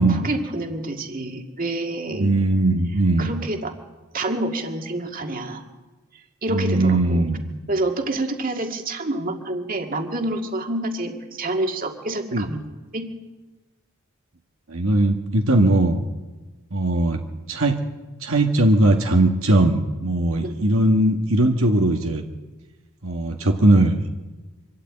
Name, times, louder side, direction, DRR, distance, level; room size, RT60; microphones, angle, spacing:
voice 1, 0.0-2.3 3.2-3.7 4.1-5.6 6.4-7.3 7.7-12.6 12.9-13.1 20.4-20.6, right 2 dB, 40° right, 3 dB, 2.1 m, -27 dB
voice 2, 2.1-3.3 6.5-7.4 12.3-12.5 14.7-16.0 16.7-17.2 17.5-17.8 18.2-22.2 23.0-23.9, right 1 dB, 70° right, 3 dB, 1.6 m, -19 dB
25.0 x 13.0 x 8.8 m, 1.2 s
head